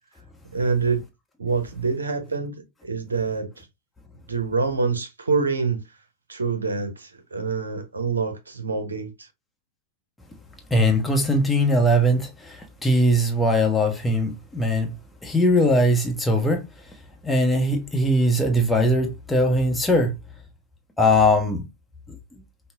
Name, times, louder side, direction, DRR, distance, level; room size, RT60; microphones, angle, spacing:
voice 1, 0.5-1.0 1.4-3.7 4.3-5.8 6.3-9.3, right 4 dB, 75° right, 0.7 m, -26 dB
voice 2, 10.7-14.9 15.2-16.6 17.2-20.1 21.0-21.6, equal, 10° left, 0.8 m, -20 dB
5.3 x 2.1 x 2.4 m
figure-of-eight pair, 90°, 0 cm